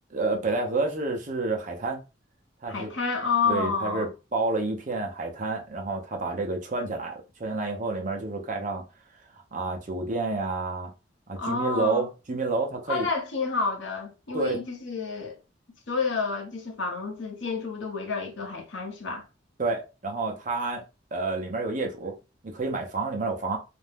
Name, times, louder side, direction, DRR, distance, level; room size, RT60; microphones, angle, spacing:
voice 1, 0.1-2.0 2.6-2.9 3.4-8.8 9.5-10.9 11.3-13.1 14.3-14.6 19.6-20.8 21.1-22.1 22.4-23.6, right 3 dB, 40° right, 0.6 m, -29 dB
voice 2, 2.7-4.1 11.4-12.1 12.9-15.4 15.9-19.2, left 4 dB, 70° left, 0.8 m, -29 dB
2.5 x 2.1 x 3.3 m
head